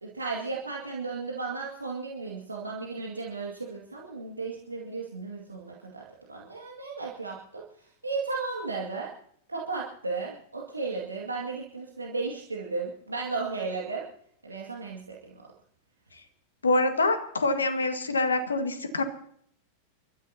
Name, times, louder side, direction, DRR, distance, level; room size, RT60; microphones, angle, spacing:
voice 1, 0.0-7.6 8.0-9.1 9.5-14.0 14.4-15.3, right 4 dB, 80° right, -2 dB, 2.2 m, -34 dB
voice 2, 16.6-19.0, left 2 dB, 75° left, 9 dB, 1.7 m, -25 dB
29.5 x 13.0 x 2.9 m, 0.63 s
figure-of-eight pair, 90°, 0 cm